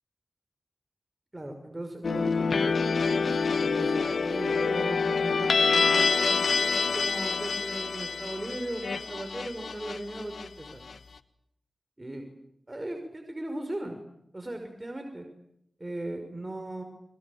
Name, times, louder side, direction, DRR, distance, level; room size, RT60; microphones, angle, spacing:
voice 1, 1.3-3.3 3.6-10.8 12.0-12.3 12.7-14.0 14.3-15.3 15.8-16.8, right 1 dB, 25° right, 4 dB, 5.7 m, -37 dB
sound 1, 2.0-10.9, left 4 dB, 85° left, 1.3 m, -27 dB
29.0 x 22.5 x 8.8 m, 0.76 s
cardioid pair, 50°, 0 cm